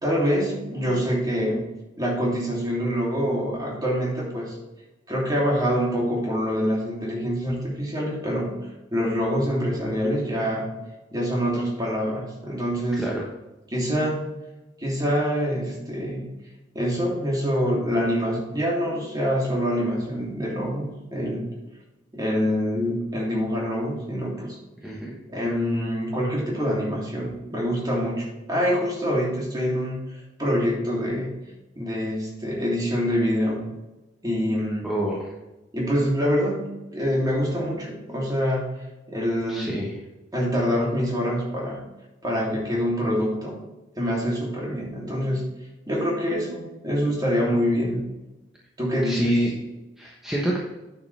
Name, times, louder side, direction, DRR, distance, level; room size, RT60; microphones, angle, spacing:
voice 1, 0.0-1.7 2.0-4.5 5.1-8.5 8.9-10.7 11.1-13.1 13.7-14.2 14.8-16.2 16.7-21.5 22.1-24.6 25.3-31.3 31.7-33.6 34.2-34.9 35.7-38.7 39.1-39.7 40.3-41.8 42.2-43.6 44.0-45.4 45.9-48.0 48.8-49.7, equal, 20° right, -3 dB, 3.0 m, -25 dB
voice 2, 24.8-25.2 34.8-35.3 39.5-40.0 49.0-49.5 50.0-50.6, equal, 5° right, -4 dB, 1.2 m, -26 dB
9.3 x 7.0 x 3.4 m, 1.0 s
head